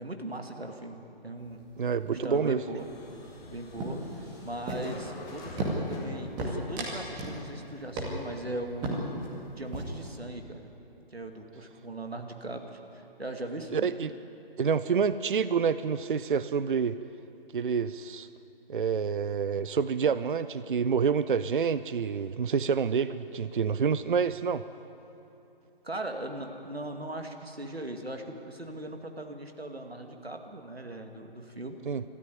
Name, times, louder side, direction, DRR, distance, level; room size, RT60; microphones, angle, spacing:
voice 1, 0.0-1.7 2.2-2.9 3.5-4.0 4.4-9.1 9.6-10.7 11.1-14.0 25.8-31.8, right 1 dB, 90° right, 4 dB, 2.3 m, -39 dB
sound 1, 1.4-1.8 2.1-2.4 2.7-3.5 3.8-5.1 5.6-6.1 6.4-7.4 7.7-7.8 8.0-8.4 8.8-9.3 9.6-10.1, right 1 dB, 15° right, 2.2 m, -34 dB
voice 2, 1.8-2.6 13.7-14.1 14.6-17.0 17.5-18.3 18.7-24.6 31.9-32.0, right 6 dB, 60° right, 14 dB, 0.6 m, -27 dB
sound 2, 2.8-8.0, left 1 dB, 10° left, 2.5 m, -47 dB
20.5 x 13.5 x 9.3 m, 2.9 s
figure-of-eight pair, 145°, 30 cm